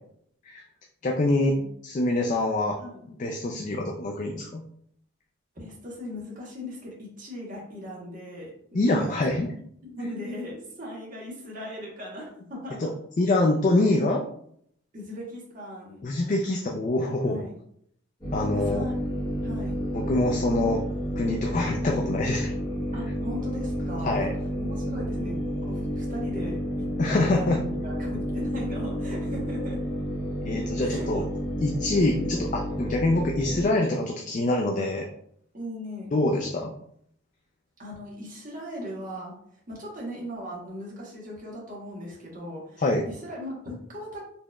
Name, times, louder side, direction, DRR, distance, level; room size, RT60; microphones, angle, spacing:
voice 1, 1.0-1.6 1.8-2.8 3.2-4.6 8.7-9.5 12.8-12.9 13.2-14.2 16.0-17.4 18.3-18.8 20.1-20.8 21.2-22.5 24.0-24.3 27.0-27.6 30.4-31.2 31.6-35.1 36.1-36.7 42.8-43.0, left 2 dB, 35° left, 1 dB, 0.3 m, -25 dB
voice 2, 5.5-9.3 9.8-12.9 14.9-16.1 17.2-17.5 18.5-19.0 19.4-19.8 22.9-24.3 24.6-29.8 30.8-31.1 35.5-36.1 37.8-39.3 39.7-44.2, left 1 dB, 40° right, -3 dB, 1.0 m, -38 dB
sound 1, 18.2-33.6, equal, 15° left, 1.4 m, -30 dB
4.3 x 3.0 x 2.2 m, 0.67 s
head